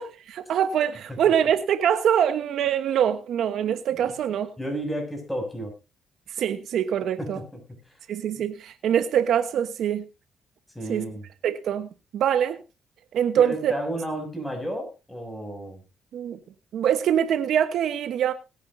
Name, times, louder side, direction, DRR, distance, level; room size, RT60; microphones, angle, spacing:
voice 1, 0.0-4.5 6.4-7.4 8.1-10.0 10.9-11.1 11.4-11.9 12.1-12.6 13.1-13.7 16.1-16.4 16.7-18.3, right 9 dB, 70° right, 1.2 m, -24 dB
voice 2, 4.6-5.7 7.2-7.4 10.8-11.2 13.4-15.8, right 1 dB, 5° left, 7.0 m, -32 dB
21.5 x 9.7 x 2.8 m
cardioid pair, 90°, 0 cm